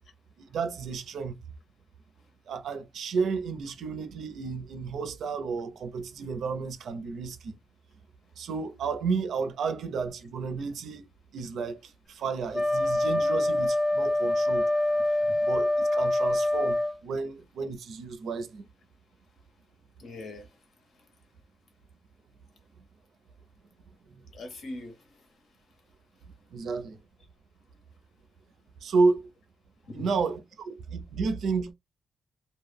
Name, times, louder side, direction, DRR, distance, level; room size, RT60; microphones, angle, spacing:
voice 1, 0.4-1.4 2.5-7.5 8.4-11.1 11.3-14.7 15.4-16.8 17.0-18.7 24.1-24.2 26.5-27.0 28.8-29.3 29.9-31.7, right 4 dB, 85° right, 0.4 m, -31 dB
Wind instrument woodwind instrument, 12.5-17.0, left 1 dB, 25° left, 0.4 m, -25 dB
voice 2, 20.0-20.6 24.3-25.3 29.8-30.1, left 1 dB, 70° left, 0.9 m, -42 dB
2.1 x 2.1 x 3.3 m
wide cardioid pair, 140°, 0 cm